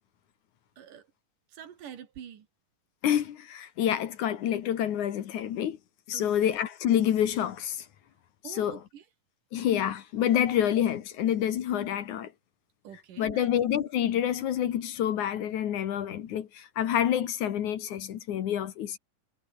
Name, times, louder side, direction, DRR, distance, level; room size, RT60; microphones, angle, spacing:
voice 1, 0.8-1.1 1.5-2.5 6.1-6.3 8.4-9.0 12.8-13.5, right 9 dB, 70° right, 3.6 m, -45 dB
voice 2, 3.0-5.8 6.1-7.9 8.4-8.8 9.5-12.3 13.2-19.0, left 10 dB, 65° left, 2.7 m, -28 dB
omnidirectional pair, 4.0 m